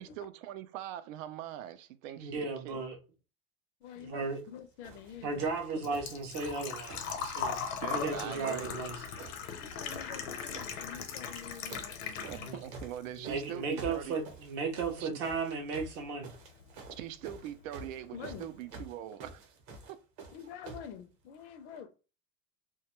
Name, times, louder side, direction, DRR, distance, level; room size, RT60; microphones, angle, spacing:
voice 1, 0.0-2.8 7.8-8.7 12.3-14.2 15.0-15.2 16.9-19.4, right 11 dB, 85° right, 0.5 m, -42 dB
voice 2, 2.2-3.0 4.0-4.4 5.2-9.0 9.2-9.3 12.4-12.6 13.1-16.3, right 4 dB, 30° right, 0.4 m, -35 dB
voice 3, 3.8-5.4 5.8-5.9 9.6-12.6 18.1-18.5 20.3-21.9, left 8 dB, 65° left, 0.5 m, -47 dB
sound 1, 4.2-4.5 4.8-8.3 8.6-9.6 9.9-10.7 11.3-12.0 12.2-20.9 21.8-21.9, right 3 dB, 45° right, 0.8 m, -49 dB
Engine / Trickle dribble / Fill (with liquid), 4.9-12.8 13.1-14.1 14.4-14.5 16.4-16.5 16.7-17.0 17.4-17.5 17.8-17.9, left 6 dB, 90° left, 0.8 m, -39 dB
2.2 x 2.2 x 2.9 m
supercardioid pair, 170°, 38 cm